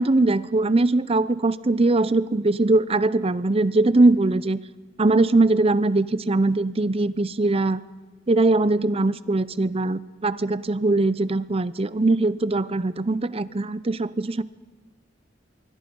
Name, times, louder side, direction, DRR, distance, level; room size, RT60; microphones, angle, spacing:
voice 1, 0.0-4.6 5.0-7.8 8.3-14.4, right 2 dB, 35° right, 17 dB, 0.7 m, -21 dB
26.0 x 23.5 x 5.4 m, 1.2 s
head